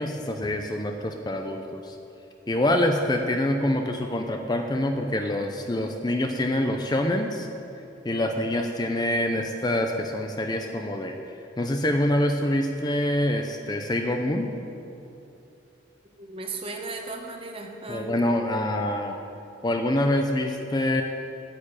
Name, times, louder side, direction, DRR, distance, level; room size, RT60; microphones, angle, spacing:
voice 1, 0.0-2.0 2.5-7.5 8.0-11.2 11.6-14.5 17.9-19.2 19.6-21.0, left 1 dB, 20° left, 4 dB, 0.5 m, -25 dB
voice 2, 16.2-18.1, right 3 dB, 30° right, 3 dB, 1.1 m, -36 dB
9.7 x 6.7 x 8.9 m, 2.7 s
head